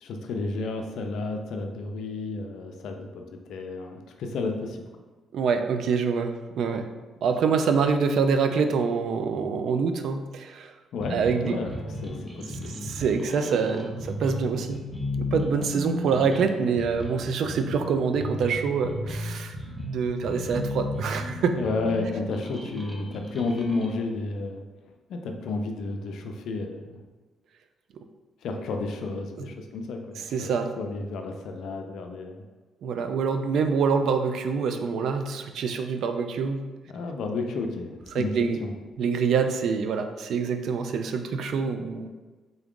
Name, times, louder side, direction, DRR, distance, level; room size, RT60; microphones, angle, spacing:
voice 1, 0.0-4.8 10.9-12.9 15.6-15.7 21.5-24.6 25.1-27.0 28.4-30.5 30.8-32.4 36.9-38.3 38.6-38.7, left 3 dB, 75° left, 4 dB, 0.4 m, -32 dB
voice 2, 5.3-6.9 7.2-10.7 11.1-11.6 12.8-14.8 15.2-19.5 19.8-21.5 29.4-29.5 30.2-30.7 32.8-36.6 38.1-38.6 39.0-42.1, right 5 dB, 70° right, 7 dB, 0.3 m, -25 dB
sound 1, 11.0-24.0, left 1 dB, 10° right, 0.6 m, -35 dB
3.7 x 2.4 x 3.6 m, 1.3 s
cardioid pair, 90°, 0 cm